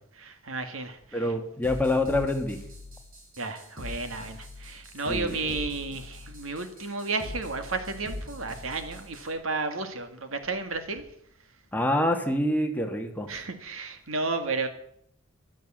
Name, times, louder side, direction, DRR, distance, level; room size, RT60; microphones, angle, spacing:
voice 1, 0.2-1.0 3.4-11.0 13.3-14.7, right 3 dB, 80° right, 8 dB, 1.9 m, -32 dB
voice 2, 1.1-2.6 5.1-5.6 11.7-13.3, left 1 dB, 10° left, 4 dB, 1.7 m, -26 dB
sound 1, 1.6-9.3, left 2 dB, 45° right, 7.0 m, -42 dB
13.5 x 12.0 x 7.4 m, 0.68 s
head